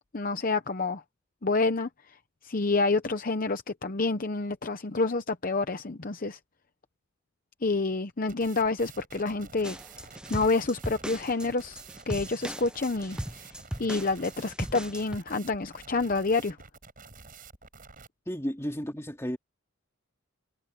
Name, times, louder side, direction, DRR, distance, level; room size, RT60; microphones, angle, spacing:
voice 1, 0.1-1.0 1.4-1.9 2.4-6.4 7.6-9.8 10.3-11.8 12.1-13.5 13.8-16.6, left 3 dB, 40° left, 0.8 m, -28 dB
sound 1, 8.3-18.1, right 4 dB, 40° right, 7.6 m, -50 dB
sound 2, 9.6-15.2, equal, 5° right, 0.7 m, -38 dB
voice 2, 18.3-19.4, equal, 10° left, 3.2 m, -33 dB
head